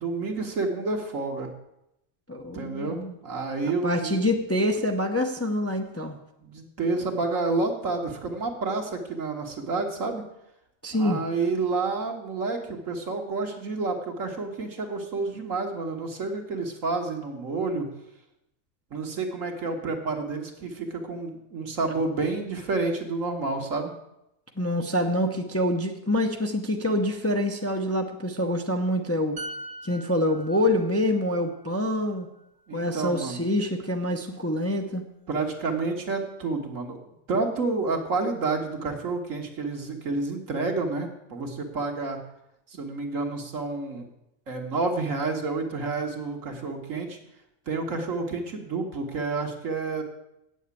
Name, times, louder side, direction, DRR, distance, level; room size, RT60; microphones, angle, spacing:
voice 1, 0.0-1.5 2.4-4.2 6.4-10.2 10.9-17.9 18.9-23.9 32.7-33.4 35.3-37.0 37.3-42.2 42.7-44.1 44.5-47.2 47.7-50.0, right 3 dB, 70° right, 2 dB, 1.9 m, -29 dB
voice 2, 2.3-3.2 3.8-6.2 10.8-11.2 24.6-29.4 29.8-32.3 32.7-35.0, left 1 dB, 15° left, 3 dB, 0.7 m, -26 dB
sound 1, 29.4-33.0 33.3-33.5, right 1 dB, 35° right, 0.7 m, -43 dB
8.6 x 7.3 x 8.4 m, 0.84 s
omnidirectional pair, 1.4 m